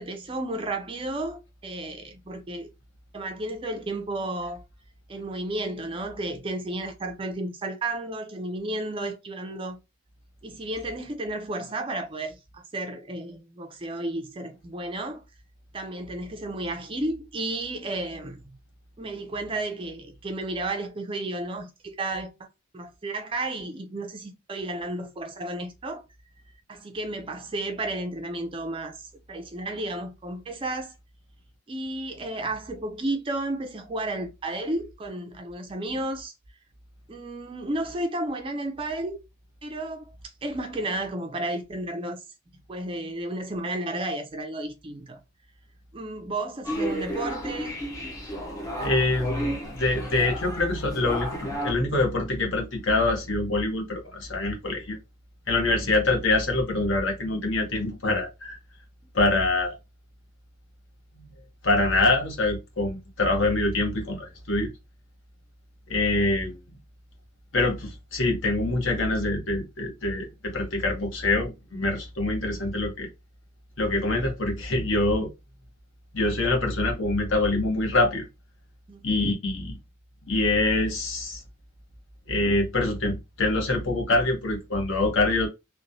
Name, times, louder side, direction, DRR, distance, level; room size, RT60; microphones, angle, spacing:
voice 1, 0.0-2.7 3.1-4.6 5.1-9.8 10.4-15.2 15.7-18.4 19.0-22.5 22.7-26.0 26.7-30.9 31.7-36.3 37.1-39.2 39.6-42.2 42.7-45.2 45.9-47.8 55.8-55.9 78.9-79.0, right 2 dB, 25° right, 0.4 m, -32 dB
sound 1, 46.6-51.7, equal, 15° left, 0.6 m, -32 dB
voice 2, 48.8-55.0 55.5-58.6 59.1-59.7 61.6-64.7 65.9-66.5 67.5-73.1 73.8-75.3 76.1-78.3 79.0-79.8 80.3-81.4 82.3-85.5, left 2 dB, 60° left, 1.0 m, -25 dB
3.0 x 2.1 x 2.5 m
head